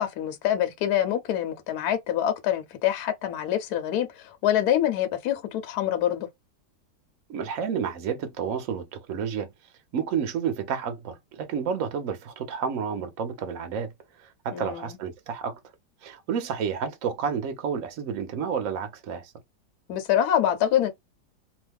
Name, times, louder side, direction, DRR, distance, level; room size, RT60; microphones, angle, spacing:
voice 1, 0.0-6.3 14.5-15.0 19.9-20.9, left 11 dB, 70° left, 1.0 m, -25 dB
voice 2, 7.3-9.5 9.9-13.9 14.2-15.6 16.0-19.3, right 7 dB, 60° right, 0.9 m, -30 dB
3.1 x 2.1 x 3.3 m
omnidirectional pair, 2.1 m